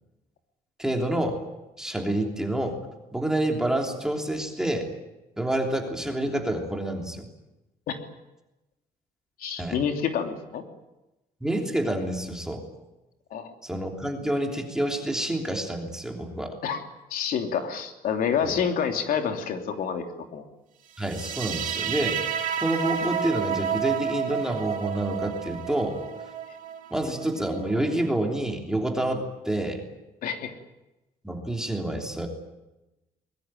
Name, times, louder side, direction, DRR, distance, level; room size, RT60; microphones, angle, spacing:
voice 1, 0.8-1.4 1.8-2.8 3.1-4.9 5.4-7.3 9.6-9.8 11.4-12.7 13.6-16.5 18.4-18.6 21.0-22.2 22.6-26.0 26.9-29.8 31.2-32.3, right 1 dB, 5° right, 2 dB, 3.2 m, -28 dB
voice 2, 9.4-10.6 13.3-13.5 16.6-16.8 17.1-20.0 20.3-20.5 30.2-30.5, left 7 dB, 70° left, 5 dB, 3.1 m, -28 dB
sound 1, 21.0-28.1, right 8 dB, 60° right, 2.8 m, -31 dB
23.5 x 21.5 x 9.2 m, 0.98 s
cardioid pair, 180°, 15 cm